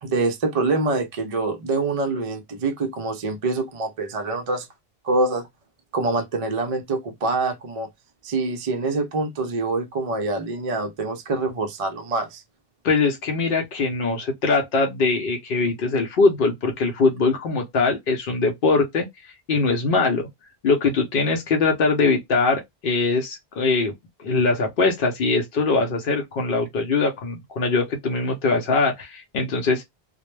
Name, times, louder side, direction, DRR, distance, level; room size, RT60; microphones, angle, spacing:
voice 1, 0.0-4.7 5.0-5.5 5.9-7.9 8.2-12.4, right 3 dB, 50° right, 0.4 m, -25 dB
voice 2, 12.8-19.1 19.5-20.3 20.6-23.9 24.2-29.8, left 3 dB, 65° left, 0.7 m, -22 dB
2.1 x 2.0 x 3.0 m
omnidirectional pair, 1.1 m